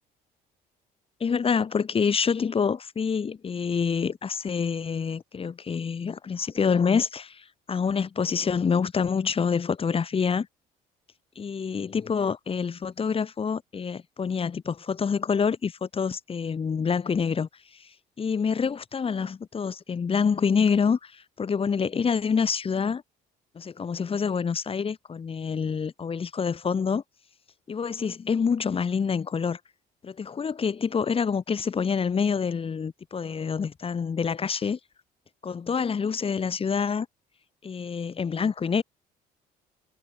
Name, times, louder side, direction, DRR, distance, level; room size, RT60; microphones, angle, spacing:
voice 1, 1.2-10.5 11.3-17.5 17.8-17.9 18.2-23.0 23.5-27.0 27.7-29.6 30.0-34.8 35.4-37.1 37.6-38.8, left 6 dB, 35° left, 5.0 m, -27 dB
cardioid pair, 110°, 17 cm